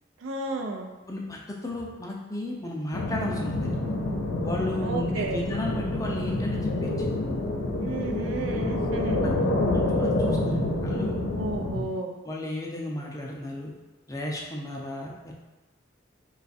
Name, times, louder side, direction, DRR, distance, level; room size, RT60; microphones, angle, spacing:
voice 1, 0.2-0.9 4.8-5.4 7.8-9.2 11.4-12.1, right 2 dB, 75° right, 4 dB, 0.4 m, -32 dB
voice 2, 1.1-3.8 4.4-7.1 9.2-11.2 12.2-13.7 14.1-15.3, left 1 dB, 15° left, -2 dB, 0.5 m, -34 dB
sound 1, 2.9-11.8, left 2 dB, 90° left, 0.5 m, -27 dB
3.2 x 2.3 x 4.1 m, 1.2 s
head